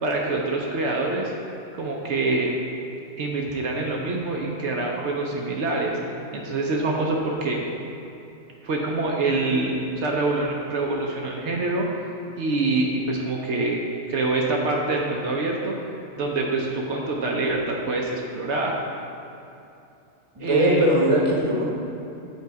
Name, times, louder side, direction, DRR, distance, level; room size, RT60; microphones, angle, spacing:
voice 1, 0.0-1.3 1.8-2.5 3.2-6.0 6.3-7.6 8.6-11.9 12.4-13.8 14.1-15.7 16.2-18.8 20.4-20.9, right 2 dB, 70° right, -1 dB, 1.0 m, -25 dB
voice 2, 20.4-21.7, right 1 dB, 30° right, -3 dB, 1.1 m, -20 dB
8.2 x 3.9 x 4.6 m, 2.8 s
omnidirectional pair, 1.2 m